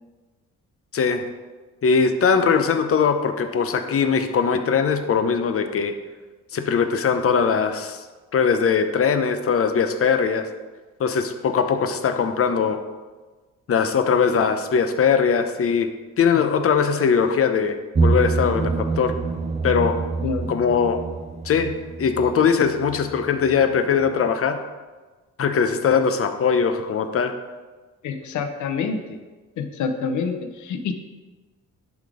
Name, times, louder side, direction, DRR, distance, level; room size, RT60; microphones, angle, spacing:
voice 1, 0.9-1.3 1.8-5.9 6.5-8.0 8.3-10.4 11.0-12.8 13.7-15.9 16.2-19.1 19.6-20.0 20.5-21.0 21.4-21.7 22.0-24.6 25.4-27.3, left 6 dB, 50° left, 8 dB, 0.9 m, -20 dB
sound 1, 17.9-23.8 24.0-24.1, right 3 dB, 25° right, 0.6 m, -26 dB
voice 2, 28.0-29.0 29.6-30.9, left 5 dB, 75° left, 7 dB, 0.9 m, -27 dB
10.5 x 4.0 x 4.9 m, 1.3 s
cardioid pair, 90°, 30 cm